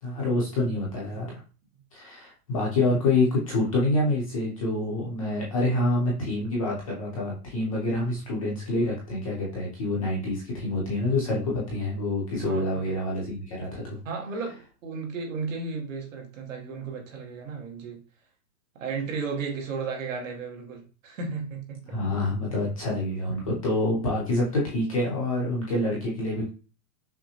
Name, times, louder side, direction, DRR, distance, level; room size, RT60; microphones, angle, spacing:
voice 1, 0.0-1.4 1.9-14.0 21.9-26.5, left 2 dB, 20° left, -4 dB, 0.7 m, -27 dB
voice 2, 12.4-12.9 14.0-18.0 18.7-22.0, right 4 dB, 55° right, 1 dB, 1.3 m, -34 dB
5.6 x 2.1 x 2.9 m, 0.35 s
supercardioid pair, 180°, 47 cm